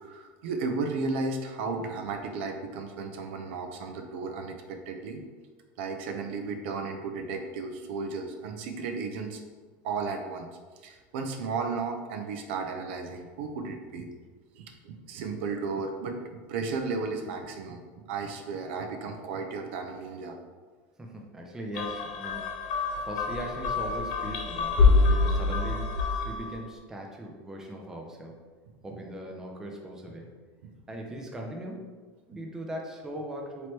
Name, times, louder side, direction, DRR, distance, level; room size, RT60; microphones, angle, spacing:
voice 1, 0.0-5.2 5.8-9.4 9.8-10.5 10.8-14.1 14.5-20.4 30.6-30.7, right 4 dB, 80° right, 4 dB, 0.5 m, -34 dB
voice 2, 21.0-24.8 25.1-28.4 28.8-30.3 30.9-31.9 32.3-33.7, right 1 dB, 10° right, 0 dB, 0.4 m, -39 dB
sound 1, 21.7-26.5, left 4 dB, 60° left, 0.8 m, -26 dB
3.1 x 3.0 x 4.4 m, 1.4 s
cardioid pair, 175°, 6 cm